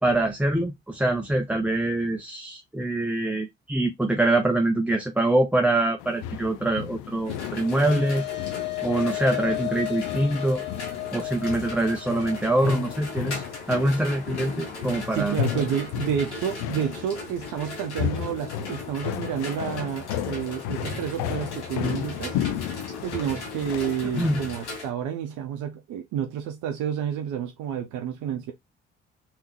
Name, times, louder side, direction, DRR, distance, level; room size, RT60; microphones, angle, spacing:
voice 1, 0.0-8.2 8.8-10.6 11.1-15.4 24.2-24.4, right 2 dB, 5° right, 0.6 m, -24 dB
sound 1, 6.0-24.8, left 11 dB, 70° left, 0.5 m, -34 dB
sound 2, 7.1-15.7, left 19 dB, 35° left, 0.7 m, -35 dB
sound 3, 7.2-24.9, left 2 dB, 90° left, 1.0 m, -39 dB
voice 2, 15.1-22.4 23.0-28.5, right 9 dB, 65° right, 0.7 m, -30 dB
3.5 x 2.7 x 3.0 m
hypercardioid pair, 40°, 33 cm